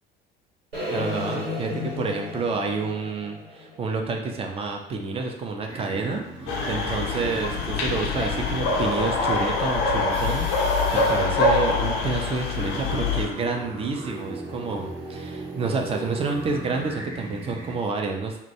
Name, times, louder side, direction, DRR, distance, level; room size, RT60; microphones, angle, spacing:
sound 1, 0.7-4.8, left 2 dB, 90° right, 0.7 m, -33 dB
voice 1, 0.9-18.4, right 4 dB, 20° right, 3 dB, 0.4 m, -29 dB
sound 2, 5.7-9.6 10.1-11.2 12.5-17.8, right 2 dB, 55° right, 0.9 m, -37 dB
sound 3, 6.5-13.3, left 3 dB, 55° left, 0.5 m, -24 dB
2.2 x 2.1 x 2.8 m, 0.88 s
figure-of-eight pair, 60°, 29 cm